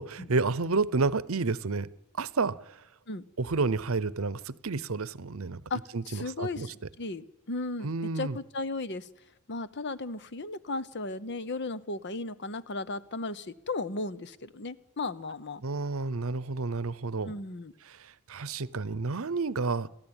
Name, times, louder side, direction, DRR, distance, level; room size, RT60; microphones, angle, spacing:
voice 1, 0.0-1.9 2.2-2.6 3.4-5.6 5.9-6.7 7.8-8.4 15.6-17.3 17.9-19.9, right 3 dB, 65° right, 19 dB, 0.8 m, -30 dB
voice 2, 5.7-9.1 9.5-15.6 17.2-17.7, left 3 dB, 50° left, 15 dB, 0.9 m, -35 dB
28.5 x 14.0 x 8.9 m, 0.97 s
head